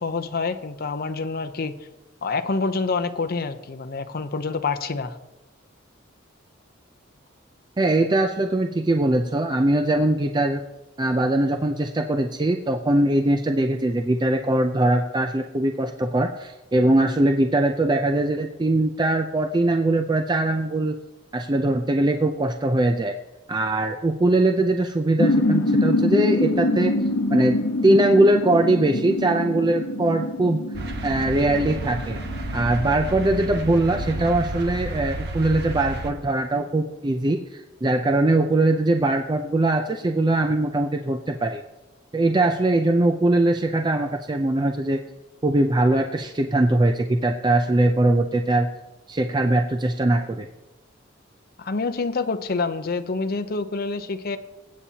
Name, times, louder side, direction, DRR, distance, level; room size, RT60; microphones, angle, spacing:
voice 1, 0.0-1.8 2.2-5.2 51.6-54.4, left 4 dB, 50° left, 9 dB, 0.7 m, -27 dB
voice 2, 7.8-10.6 11.0-21.0 21.3-23.1 23.5-26.9 27.3-27.6 27.8-30.6 31.0-32.2 32.5-41.6 42.1-45.0 45.4-48.7 49.1-50.5, right 2 dB, 20° right, 5 dB, 0.5 m, -21 dB
sound 1, 25.2-34.4, left 1 dB, 90° left, 0.8 m, -25 dB
sound 2, 30.7-36.1, right 1 dB, 55° right, 1.2 m, -31 dB
23.0 x 8.4 x 2.8 m, 1.1 s
head